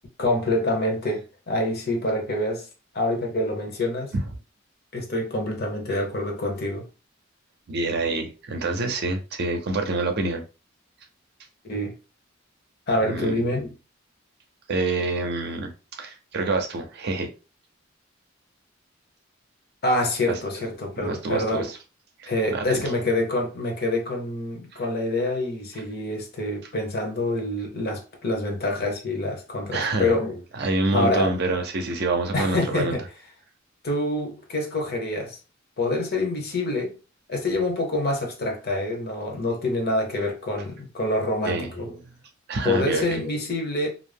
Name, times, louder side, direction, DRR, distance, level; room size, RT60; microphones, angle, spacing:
voice 1, 0.2-2.7 2.9-4.1 4.9-6.8 11.6-11.9 12.9-13.7 19.8-21.7 22.3-30.4 30.9-31.4 32.3-33.0 33.8-35.4 35.8-36.9 37.3-42.0 42.6-43.9, left 1 dB, 55° left, 0.8 m, -26 dB
voice 2, 7.7-10.4 13.0-13.4 14.7-17.3 20.3-20.4 21.0-21.8 22.2-22.8 24.7-24.8 29.7-30.1 30.5-33.0 41.4-41.7 42.5-43.2, right 3 dB, 55° right, 0.6 m, -27 dB
2.5 x 2.0 x 3.3 m
head